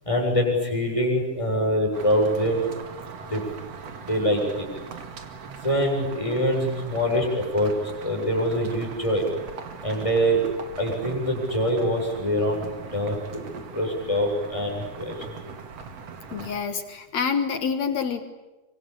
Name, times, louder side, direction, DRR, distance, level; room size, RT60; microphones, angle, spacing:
voice 1, 0.0-2.6 3.3-3.4 4.1-4.7 5.6-7.7 8.0-9.3 9.8-10.4 10.8-15.4, equal, 5° left, 0 dB, 7.0 m, -24 dB
sound 1, 1.9-16.6, right 5 dB, 45° right, 2.4 m, -41 dB
voice 2, 16.3-18.2, left 6 dB, 60° left, 9 dB, 1.8 m, -27 dB
25.5 x 25.0 x 8.7 m, 1.1 s
omnidirectional pair, 5.2 m